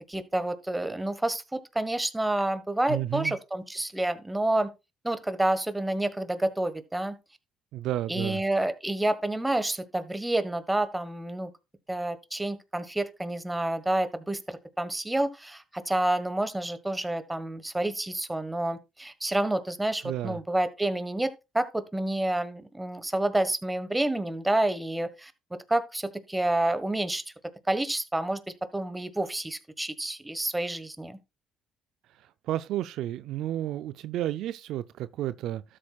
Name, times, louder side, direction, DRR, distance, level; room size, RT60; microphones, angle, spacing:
voice 1, 0.0-4.7 5.0-7.2 8.1-11.5 11.9-25.3 25.7-27.2 27.7-28.4 28.7-31.2, right 1 dB, 10° right, 1.4 m, -29 dB
voice 2, 2.9-3.3 7.7-8.4 20.0-20.4 32.5-35.6, right 13 dB, 75° right, 0.4 m, -31 dB
13.0 x 7.4 x 2.4 m
supercardioid pair, 70°, 0 cm